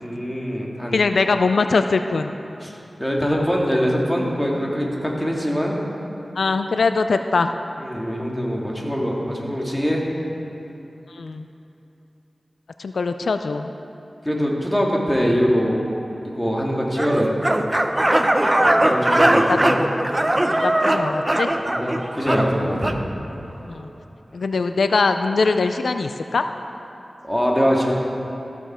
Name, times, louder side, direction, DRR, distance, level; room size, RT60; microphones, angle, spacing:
voice 1, 0.0-1.0 2.6-2.7 3.0-5.8 7.8-10.0 14.2-15.8 16.2-17.3 18.6-19.8 21.6-22.9 27.2-27.9, equal, 10° left, -2 dB, 2.1 m, -23 dB
voice 2, 0.9-2.3 6.4-7.5 11.1-11.4 12.8-13.7 19.5-19.9 20.6-21.5 23.6-23.9 24.3-26.4, left 4 dB, 90° left, 8 dB, 0.3 m, -22 dB
sound 1, 17.0-23.0, right 1 dB, 25° right, 0.7 m, -20 dB
14.5 x 7.0 x 4.4 m, 2.9 s
cardioid pair, 40°, 0 cm